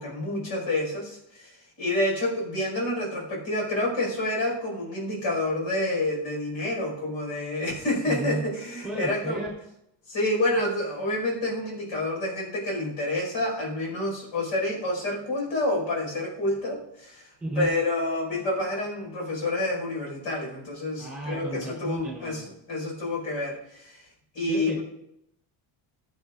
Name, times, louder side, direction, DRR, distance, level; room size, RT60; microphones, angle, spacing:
voice 1, 0.0-9.5 10.1-17.3 17.6-24.0 24.3-24.8, left 1 dB, 75° left, -1 dB, 4.8 m, -28 dB
voice 2, 8.1-8.4 8.8-9.6 17.4-17.7 21.0-22.5 24.5-24.8, right 1 dB, ahead, -1 dB, 3.5 m, -33 dB
21.0 x 7.9 x 2.4 m, 0.78 s
cardioid pair, 165°, 49 cm